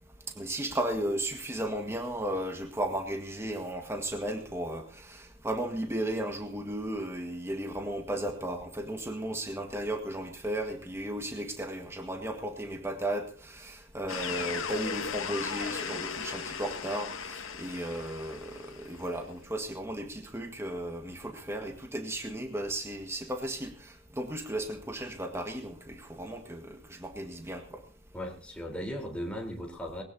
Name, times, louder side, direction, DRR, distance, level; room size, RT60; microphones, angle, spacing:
voice 1, 0.3-27.8, right 1 dB, 10° right, 4 dB, 1.7 m, -35 dB
sound 1, 14.1-19.0, left 6 dB, 80° left, 1.9 m, -37 dB
voice 2, 28.1-30.0, equal, 5° left, 1 dB, 4.0 m, -37 dB
20.5 x 18.0 x 2.8 m, 0.38 s
head